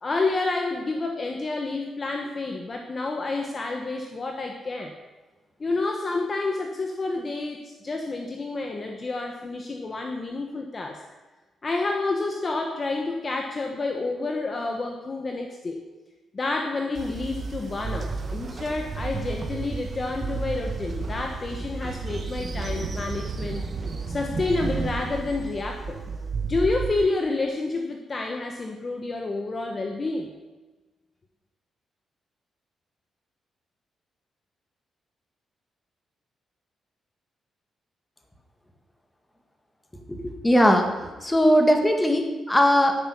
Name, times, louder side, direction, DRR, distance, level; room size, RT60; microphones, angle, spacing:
voice 1, 0.0-4.9 5.6-11.0 11.6-15.8 16.3-23.7 24.1-26.0 26.5-30.3, left 3 dB, 25° left, 3 dB, 1.3 m, -29 dB
Train, 16.9-26.9, right 4 dB, 30° right, 1.5 m, -32 dB
voice 2, 40.1-40.9 41.2-43.0, equal, 10° left, 4 dB, 1.9 m, -19 dB
11.5 x 10.5 x 9.7 m, 1.2 s
wide cardioid pair, 175°, 0 cm